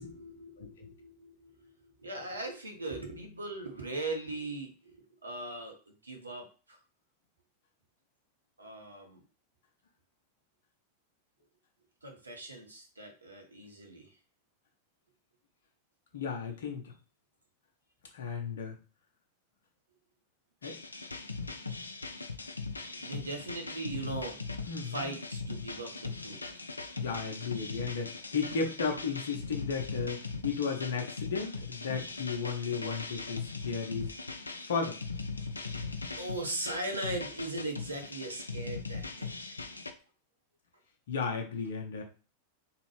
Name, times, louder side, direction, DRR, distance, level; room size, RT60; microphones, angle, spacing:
voice 1, 0.0-5.0 5.2-6.8 8.6-9.2 12.0-14.1 23.0-24.4 24.8-26.4 36.2-39.5, right 2 dB, 80° right, 2 dB, 1.0 m, -39 dB
voice 2, 0.6-0.9 16.1-16.9 18.1-18.8 20.6-20.7 24.7-25.1 27.0-34.1 34.7-35.0 41.1-42.0, left 5 dB, 60° left, 2 dB, 0.9 m, -34 dB
sound 1, 20.6-39.9, left 3 dB, 80° left, 0.4 m, -40 dB
3.7 x 3.0 x 3.2 m, 0.35 s
figure-of-eight pair, 90°, 0 cm